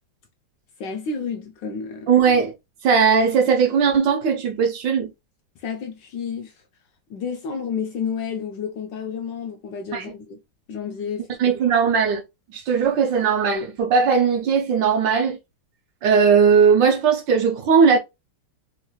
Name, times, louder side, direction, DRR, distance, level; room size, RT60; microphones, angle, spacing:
voice 1, 0.8-2.1 5.6-6.6 7.1-10.4 10.7-11.4, left 6 dB, 75° left, 1.1 m, -30 dB
voice 2, 2.1-2.5 2.8-5.1 9.9-10.1 11.4-12.2 12.5-15.4 16.0-18.0, right 6 dB, 70° right, 1.2 m, -18 dB
3.6 x 2.9 x 2.3 m
omnidirectional pair, 2.3 m